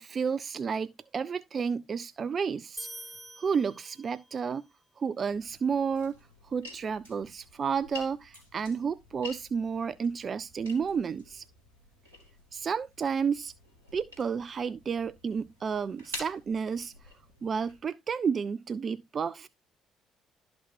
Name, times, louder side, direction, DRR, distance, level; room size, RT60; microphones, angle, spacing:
voice 1, 0.0-2.9 3.4-4.7 5.0-6.2 6.4-11.4 12.5-13.5 13.9-16.9 17.4-19.5, right 6 dB, 40° right, 0.4 m, -31 dB
sound 1, 2.8-4.4, equal, ahead, 1.4 m, -45 dB
sound 2, 5.2-17.8, left 2 dB, 80° right, 2.7 m, -49 dB
12.0 x 6.1 x 2.5 m
figure-of-eight pair, 45°, 0 cm